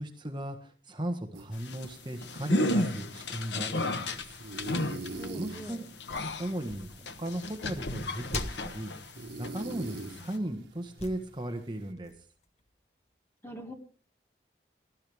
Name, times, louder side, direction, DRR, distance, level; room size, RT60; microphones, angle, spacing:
voice 1, 0.0-4.4 5.3-5.8 6.4-8.9 9.4-12.1, right 1 dB, 25° right, 5 dB, 1.3 m, -36 dB
sound 1, 1.3-11.9, right 2 dB, 80° right, 1.5 m, -45 dB
sound 2, 1.5-9.1 9.4-10.4, left 1 dB, 80° left, 1.2 m, -33 dB
sound 3, 3.1-3.3 4.0-5.3 5.9-7.0 7.4-7.7 8.3-8.8 9.8-10.3 10.9-11.5 11.8-13.1, left 1 dB, 35° left, 1.5 m, -44 dB
voice 2, 5.2-5.9 13.4-13.7, right 1 dB, 15° left, 4 dB, 2.0 m, -43 dB
19.5 x 12.5 x 3.5 m, 0.40 s
head